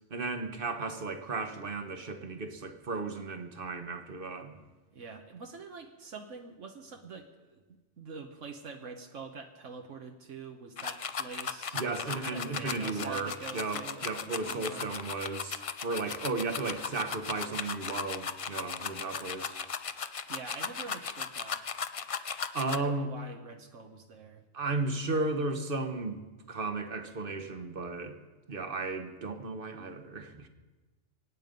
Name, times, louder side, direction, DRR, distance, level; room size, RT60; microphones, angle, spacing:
voice 1, 0.1-4.6 11.7-19.6 22.5-23.1 24.5-28.2 28.5-30.5, right 3 dB, 45° right, 8 dB, 1.4 m, -35 dB
voice 2, 4.9-11.8 12.3-14.9 20.3-21.6 22.7-24.4, right 5 dB, 75° right, 4 dB, 1.4 m, -45 dB
sound 1, 10.8-22.8, left 6 dB, 45° left, 0.4 m, -37 dB
24.5 x 9.3 x 5.3 m, 1.2 s
omnidirectional pair, 1.3 m